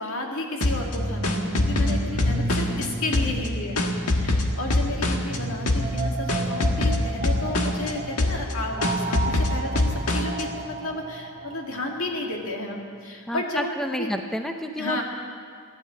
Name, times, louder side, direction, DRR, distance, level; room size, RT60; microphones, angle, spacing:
voice 1, 0.0-3.8 4.1-14.1 14.8-15.0, left 2 dB, 65° left, 1 dB, 2.3 m, -32 dB
sound 1, 0.6-2.9 3.1-5.4 5.7-6.0 6.3-7.9 8.2-8.5 8.8-10.4, left 2 dB, 90° left, 1.5 m, -24 dB
sound 2, 0.7-12.5, right 2 dB, 35° right, 1.2 m, -33 dB
voice 2, 13.3-15.0, equal, ahead, 4 dB, 0.6 m, -29 dB
15.5 x 11.0 x 8.4 m, 2.1 s
head